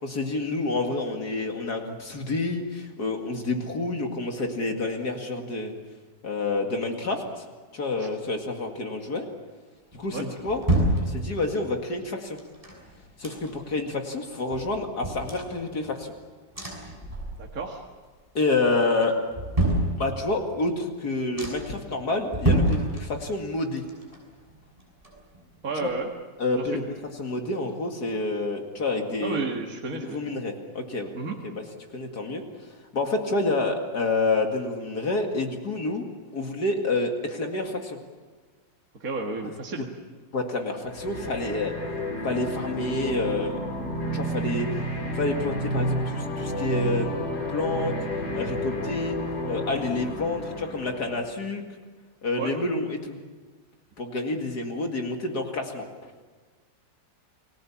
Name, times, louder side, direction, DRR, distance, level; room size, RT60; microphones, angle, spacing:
voice 1, 0.0-5.7 6.2-7.4 7.7-9.3 9.9-10.6 11.0-12.4 13.2-16.1 18.3-19.2 20.0-23.8 25.8-25.9 26.4-26.8 27.2-29.4 29.9-31.1 31.4-31.6 31.9-32.4 32.9-36.0 36.3-38.0 40.3-41.7 42.2-43.6 44.1-44.7 45.1-47.2 47.5-47.9 48.3-49.2 49.5-51.6 52.2-53.2 54.0-56.1, left 2 dB, 60° left, 3 dB, 2.7 m, -28 dB
sound 1, 9.9-11.7 12.4-13.8 14.1-14.2 14.5-16.1 16.5-17.7 18.0-18.5 19.0-20.5 20.9-21.0 21.4-21.8 22.3-23.5 23.8-25.6 25.9-26.0, right 1 dB, 20° right, 6.7 m, -28 dB
voice 2, 17.4-17.8 25.6-26.1 26.5-26.8 29.2-30.4 31.1-31.4 39.0-39.9 52.4-52.5, right 4 dB, 50° right, 0 dB, 2.2 m, -32 dB
sound 2, 40.8-51.4, equal, 80° left, 4.1 m, -31 dB
29.5 x 20.0 x 7.3 m, 1.4 s
omnidirectional pair, 2.0 m